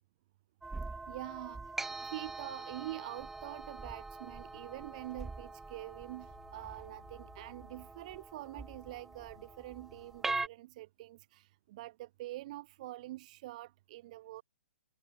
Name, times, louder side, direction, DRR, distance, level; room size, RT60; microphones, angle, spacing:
sound 1, 0.6-10.5, right 3 dB, 5° right, 1.0 m, -43 dB
voice 1, 1.1-14.4, right 16 dB, 35° right, 0.5 m, -45 dB
Telephone, 4.1-5.9 6.2-10.3, left 9 dB, 60° left, 6.2 m, -64 dB
hypercardioid pair, 150°, 6 cm